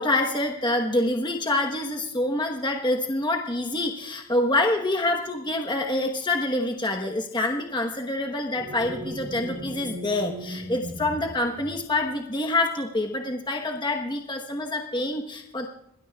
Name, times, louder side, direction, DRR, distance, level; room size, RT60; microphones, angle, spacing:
voice 1, 0.0-15.7, left 2 dB, 20° left, 2 dB, 1.1 m, -26 dB
sound 1, 8.5-12.2, equal, 85° right, 3.3 m, -38 dB
26.0 x 20.0 x 2.4 m, 0.73 s
head